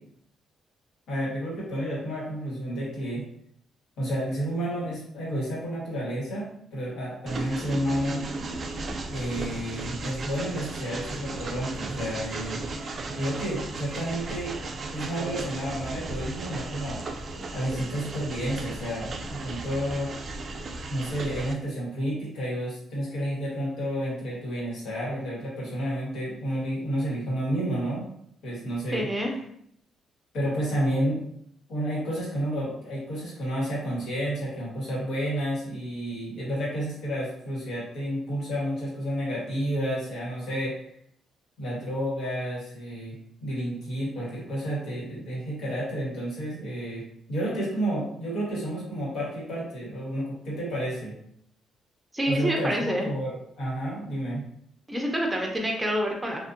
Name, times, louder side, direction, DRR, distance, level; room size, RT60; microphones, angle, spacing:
voice 1, 1.1-3.2 4.0-8.2 9.1-12.6 13.1-14.6 14.9-17.2 17.5-20.1 20.9-28.0 28.4-29.1 30.3-31.2 31.7-40.8 41.6-51.1 52.3-54.4, equal, 75° left, -6 dB, 1.5 m, -31 dB
Train, 7.3-21.5, right 2 dB, 45° right, 0.3 m, -35 dB
voice 2, 28.9-29.3 52.1-53.1 54.9-56.5, equal, 10° right, 0 dB, 0.7 m, -27 dB
2.6 x 2.5 x 2.6 m, 0.69 s
cardioid pair, 90°, 0 cm